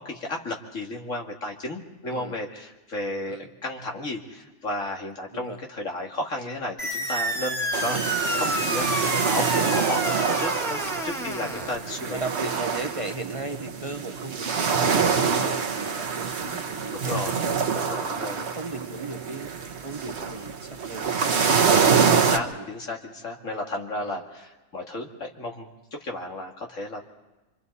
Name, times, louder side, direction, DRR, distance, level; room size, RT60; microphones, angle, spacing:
voice 1, 0.0-8.9 9.2-12.2 15.1-15.5 16.9-17.4 17.7-18.4 22.1-27.0, left 1 dB, 85° left, 1 dB, 2.4 m, -33 dB
voice 2, 5.3-5.6 11.4-11.7 12.1-15.0 15.3-17.6 18.2-19.5 19.8-22.6 24.0-24.2, right 3 dB, 30° right, 6 dB, 0.7 m, -37 dB
sound 1, 6.8-11.8, equal, ahead, 1.5 m, -29 dB
sound 2, 7.7-22.4, right 6 dB, 60° right, 1.2 m, -25 dB
27.0 x 24.5 x 4.1 m, 1.1 s
omnidirectional pair, 1.3 m